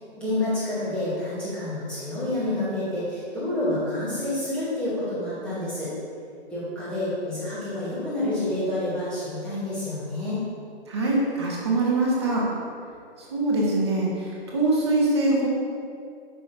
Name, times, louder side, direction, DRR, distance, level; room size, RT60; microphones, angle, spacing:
voice 1, 0.2-5.9 6.5-10.4, left 1 dB, 5° left, -12 dB, 1.1 m, -28 dB
voice 2, 10.9-12.5 13.2-15.5, right 2 dB, 25° right, -4 dB, 0.9 m, -23 dB
7.2 x 5.8 x 2.7 m, 2.4 s
hypercardioid pair, 165°, 32 cm